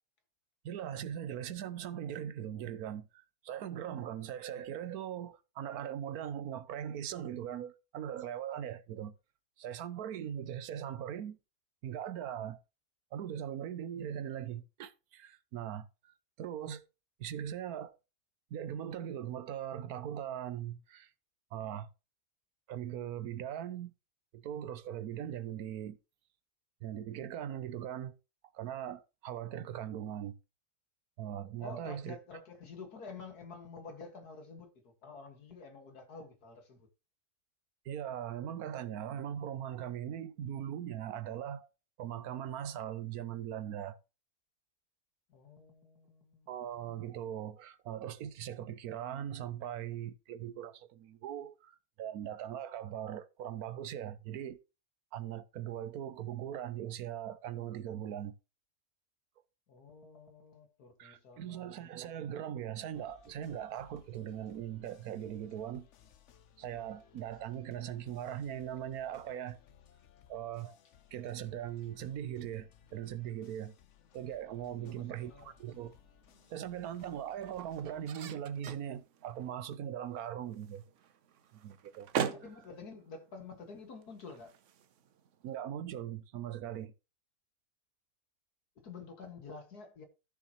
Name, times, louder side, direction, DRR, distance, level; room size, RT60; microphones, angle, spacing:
voice 1, 0.6-9.1 9.6-11.4 11.8-12.6 13.1-16.9 17.2-18.0 18.5-21.1 21.5-21.9 22.7-23.9 24.3-26.0 26.8-28.1 28.5-30.4 31.2-32.2 37.8-41.7 42.0-44.0 46.5-54.6 55.1-58.4 61.0-65.9 66.6-69.6 70.3-70.8 71.1-73.7 74.1-75.9 76.5-80.8 81.5-82.1 85.4-86.9, right 10 dB, 75° right, 1.1 m, -40 dB
voice 2, 31.6-36.9 45.3-46.5 59.7-61.7 74.7-75.5 82.3-84.5 88.8-90.1, left 4 dB, 75° left, 2.3 m, -49 dB
sound 1, 62.9-78.2, left 9 dB, 55° left, 1.0 m, -63 dB
sound 2, 75.2-85.6, right 8 dB, 60° right, 1.0 m, -44 dB
13.5 x 6.9 x 2.9 m
omnidirectional pair, 1.7 m